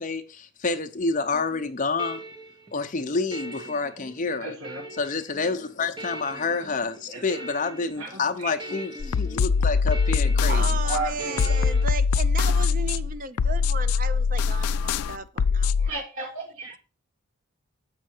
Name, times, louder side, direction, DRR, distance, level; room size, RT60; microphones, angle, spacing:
voice 1, 0.0-2.2 2.7-4.6 5.0-10.7, left 4 dB, 35° left, 0.7 m, -28 dB
sound 1, 1.3-11.9, right 1 dB, 20° right, 0.9 m, -42 dB
voice 2, 4.4-4.8 7.1-7.2 8.0-8.8 10.8-11.5 15.8-16.8, right 2 dB, 70° right, 1.5 m, -34 dB
sound 2, 9.0-15.9, left 5 dB, 85° left, 0.4 m, -23 dB
voice 3, 10.5-15.9, right 5 dB, 40° right, 0.5 m, -35 dB
7.4 x 5.7 x 4.5 m
head